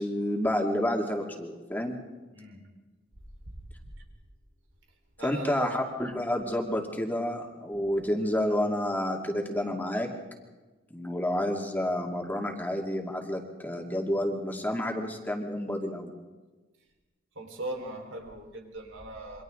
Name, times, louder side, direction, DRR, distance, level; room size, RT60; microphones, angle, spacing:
voice 1, 0.0-2.0 5.2-10.1 10.9-16.1, left 1 dB, 10° left, 1 dB, 2.5 m, -29 dB
voice 2, 2.3-2.6 5.2-5.7 17.3-19.4, right 1 dB, 85° right, 2 dB, 4.7 m, -39 dB
28.5 x 24.5 x 3.9 m, 1.2 s
head